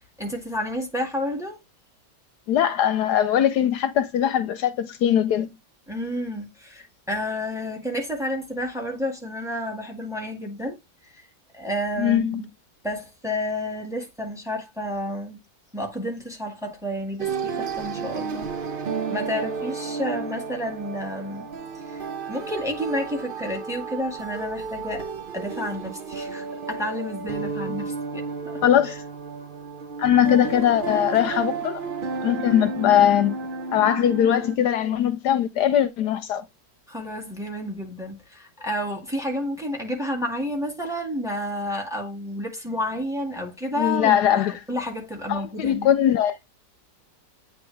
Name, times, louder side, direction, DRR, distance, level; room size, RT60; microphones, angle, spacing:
voice 1, 0.2-1.6 5.9-10.8 11.5-12.5 12.8-15.4 15.7-18.5 19.1-21.5 21.7-29.0 36.9-44.2 44.7-45.9, left 1 dB, ahead, 1.7 m, -30 dB
voice 2, 2.5-5.5 12.0-12.4 28.6-29.0 30.0-31.8 32.2-33.4 33.7-36.4 43.8-44.6 45.3-46.3, left 10 dB, 75° left, 1.1 m, -21 dB
sound 1, 17.2-34.6, right 4 dB, 80° right, 0.4 m, -32 dB
8.9 x 3.4 x 3.2 m
omnidirectional pair, 1.9 m